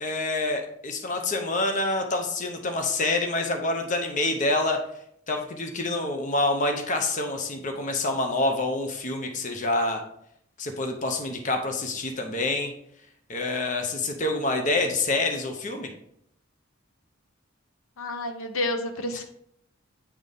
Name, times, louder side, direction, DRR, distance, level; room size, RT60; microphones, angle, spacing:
voice 1, 0.0-4.8 5.3-10.0 10.6-12.7 13.3-15.9, left 2 dB, 35° left, 4 dB, 0.7 m, -27 dB
voice 2, 18.0-19.2, left 2 dB, 85° left, 6 dB, 0.7 m, -30 dB
8.6 x 4.0 x 3.4 m, 0.72 s
head